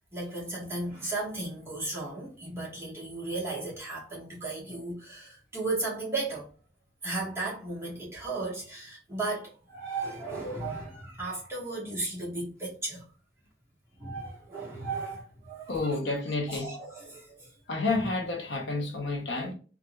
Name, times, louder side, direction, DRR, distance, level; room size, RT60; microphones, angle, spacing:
voice 1, 0.1-6.5 7.0-13.1 14.0-15.7 16.5-17.5 18.7-18.8, right 2 dB, 15° right, 1.4 m, -35 dB
voice 2, 15.7-16.7 17.7-19.5, left 3 dB, 70° left, 0.8 m, -30 dB
4.0 x 2.4 x 2.3 m
head